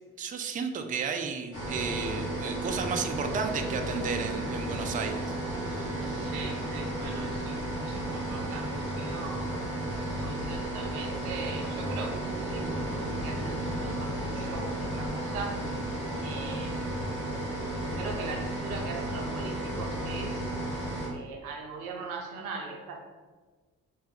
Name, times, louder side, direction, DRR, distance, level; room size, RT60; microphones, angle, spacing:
voice 1, 0.2-5.3 5.6-6.0, right 5 dB, 20° right, 5 dB, 0.4 m, -33 dB
sound 1, 1.5-21.1, right 1 dB, 80° left, 1.2 m, -33 dB
voice 2, 6.0-7.6 7.9-9.5 10.2-12.2 12.5-15.6 16.2-16.9 17.9-20.4 21.0-23.0, right 4 dB, 85° right, 1 dB, 0.6 m, -40 dB
3.5 x 2.4 x 4.3 m, 1.4 s
hypercardioid pair, 40°, 43 cm